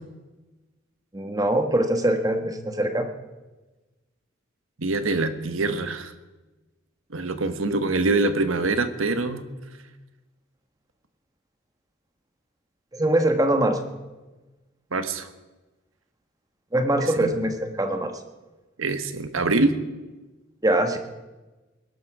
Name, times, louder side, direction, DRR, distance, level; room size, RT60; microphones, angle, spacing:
voice 1, 1.1-3.1 12.9-13.8 16.7-18.1 20.6-21.0, right 1 dB, 20° right, 7 dB, 1.3 m, -22 dB
voice 2, 4.8-6.1 7.1-9.4 14.9-15.3 17.0-17.4 18.8-19.8, right 3 dB, 85° right, 10 dB, 1.2 m, -24 dB
20.5 x 12.0 x 4.9 m, 1.1 s
head